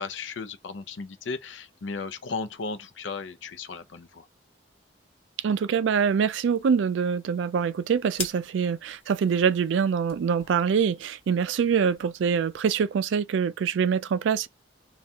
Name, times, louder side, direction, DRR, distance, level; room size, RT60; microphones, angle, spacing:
voice 1, 0.0-4.3, left 4 dB, 80° left, 0.5 m, -35 dB
voice 2, 5.4-14.5, right 6 dB, 80° right, 0.3 m, -24 dB
sound 1, 5.9-12.7, left 4 dB, 30° left, 0.8 m, -45 dB
3.5 x 2.4 x 4.2 m
head